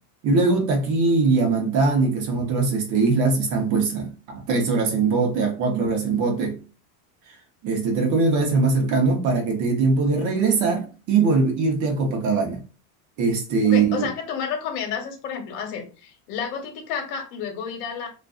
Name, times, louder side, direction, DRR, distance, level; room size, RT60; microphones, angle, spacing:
voice 1, 0.2-6.6 7.6-12.6 13.2-14.1, right 4 dB, 40° right, 0.8 m, -21 dB
voice 2, 13.6-18.1, left 7 dB, 65° left, 1.1 m, -30 dB
2.4 x 2.4 x 2.3 m
supercardioid pair, 130°, 47 cm